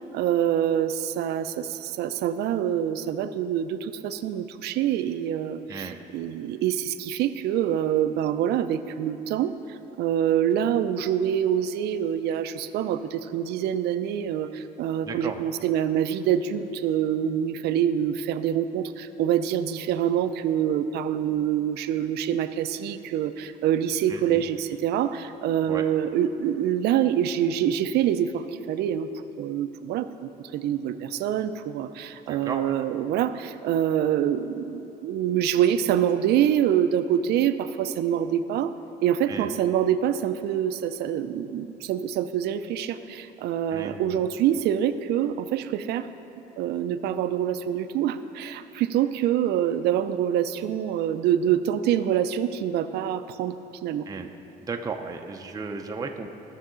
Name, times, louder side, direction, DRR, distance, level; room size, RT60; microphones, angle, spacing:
voice 1, 0.1-29.1 29.4-30.1 30.4-38.7 39.0-46.1 46.6-53.5 53.8-54.0, right 10 dB, 75° right, 11 dB, 0.5 m, -25 dB
voice 2, 5.7-6.0 15.0-15.4 24.1-24.4 25.7-25.8 32.3-32.8 39.3-39.5 43.7-44.2 54.1-54.3 54.6-56.3, right 4 dB, 20° right, 3 dB, 0.6 m, -35 dB
16.0 x 6.5 x 3.8 m, 3.0 s
cardioid pair, 110°, 17 cm